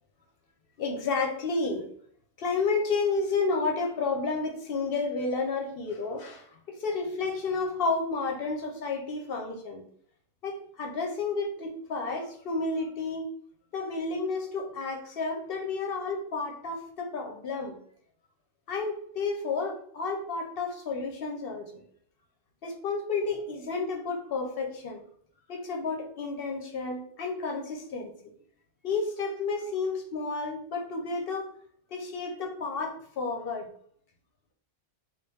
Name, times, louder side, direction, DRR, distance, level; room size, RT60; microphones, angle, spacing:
voice 1, 0.8-1.8 2.4-9.8 10.4-13.2 13.7-17.8 18.7-21.7 22.6-25.0 25.5-28.1 28.8-31.5 31.9-33.7, left 4 dB, 60° left, 3 dB, 0.7 m, -31 dB
3.3 x 2.3 x 3.4 m, 0.62 s
omnidirectional pair, 1.3 m